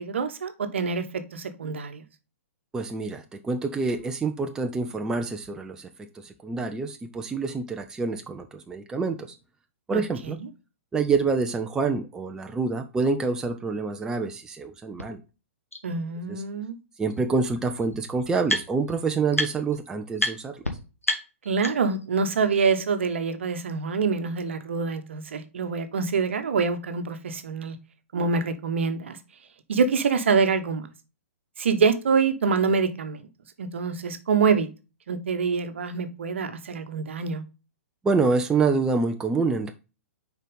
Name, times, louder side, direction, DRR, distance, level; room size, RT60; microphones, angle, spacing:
voice 1, 0.0-2.0 9.9-10.5 15.8-16.8 21.4-27.8 28.1-29.2 29.7-30.9 31.6-33.2 33.6-34.7 35.1-37.4, right 5 dB, 60° right, 9 dB, 1.0 m, -25 dB
voice 2, 2.7-9.3 9.9-10.4 10.9-15.2 16.3-16.4 17.0-20.6 38.0-39.7, right 4 dB, 10° right, 5 dB, 0.5 m, -27 dB
sound 1, 15.0-15.1 15.7-15.8 17.1-17.2 17.4-19.0 19.3-19.8 20.2-20.3 20.6-20.7 21.0-22.1, left 1 dB, 90° left, 1.1 m, -29 dB
6.6 x 4.6 x 3.6 m, 0.31 s
figure-of-eight pair, 115°, 7 cm